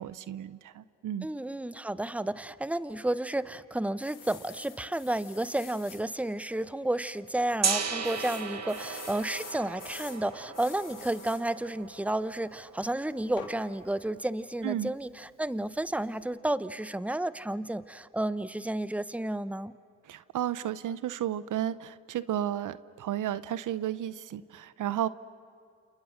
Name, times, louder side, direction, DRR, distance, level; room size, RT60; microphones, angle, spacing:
voice 1, 0.0-1.3 14.6-14.9 20.0-25.1, right 11 dB, 70° right, 17 dB, 0.9 m, -33 dB
voice 2, 1.2-19.7, right 1 dB, 5° right, 16 dB, 1.0 m, -32 dB
sound 1, 4.0-6.0 6.6-6.7 6.9-7.0 8.0-10.2 10.5-11.4 13.4-13.6, left 8 dB, 80° left, 3.4 m, -47 dB
Gong, 7.6-13.5, right 5 dB, 55° right, 2.2 m, -36 dB
30.0 x 28.0 x 6.5 m, 2.5 s
supercardioid pair, 50°, 32 cm